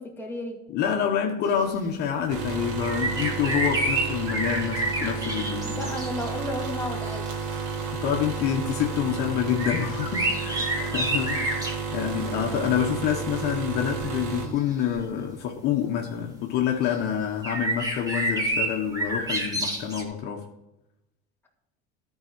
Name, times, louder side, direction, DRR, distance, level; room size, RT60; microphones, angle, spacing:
voice 1, 0.0-0.6 5.6-7.3, left 1 dB, 10° left, -1 dB, 2.4 m, -33 dB
voice 2, 0.7-5.9 7.9-20.4, left 9 dB, 55° left, 2 dB, 1.5 m, -27 dB
sound 1, 2.3-14.5, right 5 dB, 80° right, 2.7 m, -32 dB
sound 2, 2.8-6.3 7.0-7.1 9.6-11.8 13.8-14.2 14.9-15.0 16.8-17.0 17.4-20.0, right 1 dB, 20° right, 2.4 m, -28 dB
12.5 x 4.9 x 8.0 m, 0.93 s
cardioid pair, 125°, 20 cm